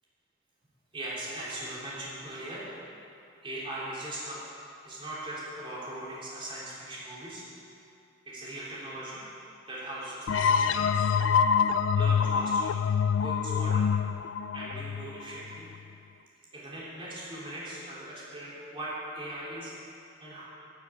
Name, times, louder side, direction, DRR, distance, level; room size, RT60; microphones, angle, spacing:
voice 1, 0.9-2.7 3.4-4.4 4.8-7.4 8.3-9.2 9.7-11.1 11.9-12.7 13.1-13.9 14.5-15.7 16.5-19.9 20.2-20.4, right 1 dB, 25° right, -8 dB, 3.6 m, -39 dB
sound 1, 10.3-15.8, left 6 dB, 65° left, 0.3 m, -26 dB
13.5 x 7.2 x 8.2 m, 2.7 s
head